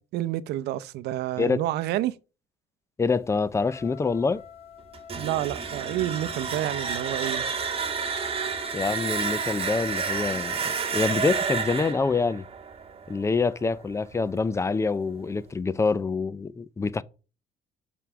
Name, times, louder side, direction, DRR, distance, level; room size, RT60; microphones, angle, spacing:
voice 1, 0.1-2.1 5.2-7.5, right 14 dB, 80° right, 0.6 m, -29 dB
voice 2, 3.0-4.4 8.7-12.4 13.1-17.0, left 4 dB, 15° left, 0.4 m, -26 dB
Trumpet, 3.5-10.8, left 7 dB, 45° left, 2.6 m, -46 dB
sound 1, 4.9-13.7, right 6 dB, 35° right, 1.6 m, -30 dB
6.1 x 5.5 x 6.0 m
cardioid pair, 110°, 17 cm